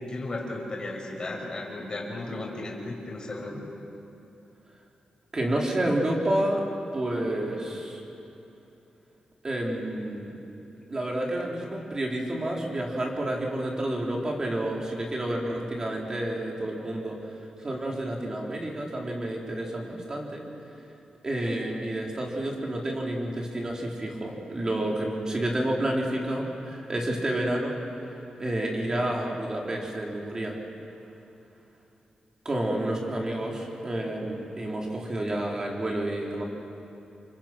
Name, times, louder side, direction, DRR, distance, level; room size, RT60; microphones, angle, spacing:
voice 1, 0.1-3.6, left 2 dB, 35° left, -1 dB, 5.2 m, -35 dB
voice 2, 5.3-6.6 6.9-8.0 9.4-10.4 10.9-17.2 17.6-20.4 21.2-27.8 28.4-30.6 32.4-36.4, right 1 dB, 30° right, -1 dB, 3.9 m, -29 dB
29.0 x 25.0 x 6.1 m, 2.9 s
wide cardioid pair, 135°, 2 cm